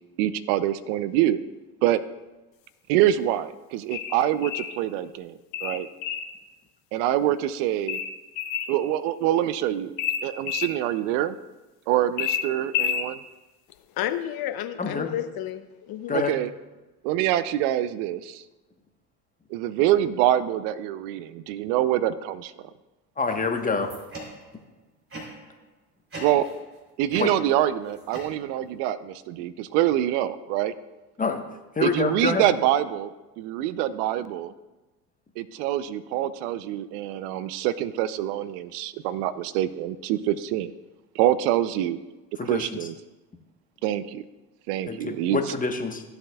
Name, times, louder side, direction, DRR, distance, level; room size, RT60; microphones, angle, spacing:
voice 1, 0.2-1.4 1.8-2.0 2.9-5.9 6.9-8.0 8.7-9.9 10.2-11.3 11.9-13.2 16.1-16.5 17.0-18.4 19.5-22.5 26.2-26.4 27.0-30.7 31.8-33.1 33.4-34.5 35.4-40.7 41.1-42.0 42.4-42.9 43.8-44.2 44.7-45.4, right 12 dB, 65° right, 15 dB, 0.6 m, -25 dB
sound 1, 3.9-4.8 5.5-6.3 7.9-8.7 10.0-10.7 12.2-13.1, left 8 dB, 85° left, 0.9 m, -29 dB
voice 2, 14.0-16.2, left 11 dB, 45° left, 10 dB, 0.8 m, -31 dB
voice 3, 14.8-15.1 16.1-16.3 23.2-23.9 27.2-27.3 31.2-31.4 31.7-32.5 42.4-42.7 44.9-46.0, left 4 dB, 15° left, 5 dB, 1.2 m, -26 dB
sound 2, 23.3-24.6 25.1-25.6 26.1-26.8 27.1-28.8, right 1 dB, 25° right, 3.2 m, -41 dB
15.0 x 7.8 x 2.3 m, 1.1 s
hypercardioid pair, 70°, 49 cm